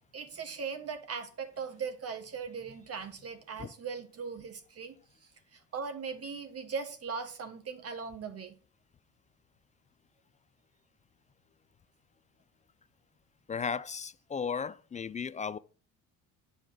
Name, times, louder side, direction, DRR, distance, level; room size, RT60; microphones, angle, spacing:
voice 1, 0.1-4.9 5.5-8.6, right 5 dB, 40° right, 1.5 m, -39 dB
voice 2, 13.5-15.6, left 6 dB, 20° left, 0.4 m, -35 dB
9.0 x 5.0 x 5.7 m
hypercardioid pair, 60°, 38 cm